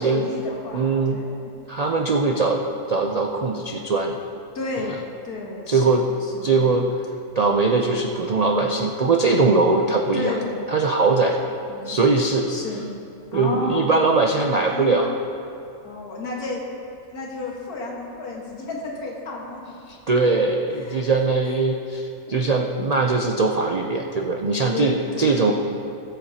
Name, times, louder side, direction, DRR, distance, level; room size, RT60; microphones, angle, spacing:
voice 1, 0.0-1.4 4.5-6.0 6.2-6.7 10.1-10.7 11.7-12.0 12.5-12.9 13.3-13.9 14.4-15.0 15.8-16.6 17.1-19.7 20.8-21.0 22.3-22.5 24.7-25.4, left 3 dB, 90° left, -2 dB, 2.1 m, -32 dB
voice 2, 0.7-1.2 1.7-4.2 4.8-4.9 5.7-6.0 6.4-6.9 7.4-10.3 10.7-11.4 11.8-12.5 13.3-15.1 19.9-25.5, right 3 dB, 75° right, 1 dB, 0.3 m, -21 dB
19.0 x 8.0 x 2.8 m, 2.7 s
omnidirectional pair, 1.6 m